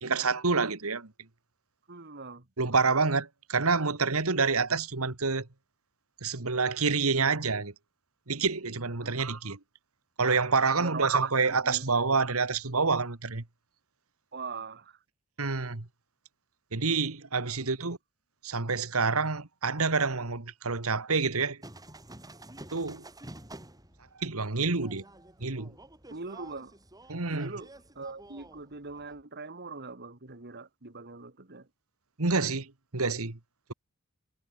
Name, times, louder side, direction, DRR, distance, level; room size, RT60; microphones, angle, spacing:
voice 1, 0.0-1.1 2.6-5.5 6.2-7.7 8.3-9.6 10.2-13.4 15.4-15.9 16.7-18.0 18.4-21.6 22.7-23.0 24.2-25.0 25.4-25.7 27.1-27.5 32.2-33.4, right 4 dB, 75° right, 1.8 m, -27 dB
voice 2, 1.9-2.5 9.0-9.2 10.8-11.3 11.6-11.9 14.3-15.0 17.8-17.9 26.1-26.7 27.3-31.7, right 4 dB, 50° right, 2.4 m, -42 dB
sound 1, 21.6-29.2, right 1 dB, 15° right, 7.8 m, -50 dB
head